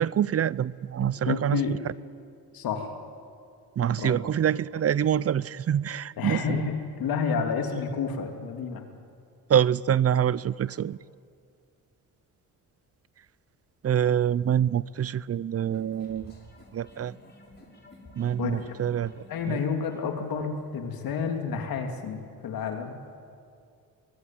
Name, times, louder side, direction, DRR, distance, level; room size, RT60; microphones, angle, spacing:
voice 1, 0.0-1.6 3.8-6.6 9.5-11.0 13.8-16.4 16.7-17.1 18.2-19.6, right 9 dB, 45° right, 0.6 m, -26 dB
voice 2, 1.2-1.7 2.5-2.9 4.0-4.2 6.2-8.8 18.4-18.5 19.3-22.9, left 6 dB, 80° left, 3.1 m, -30 dB
sound 1, 15.7-20.7, left 1 dB, 30° left, 6.2 m, -52 dB
23.0 x 22.5 x 9.5 m
cardioid pair, 85°, 35 cm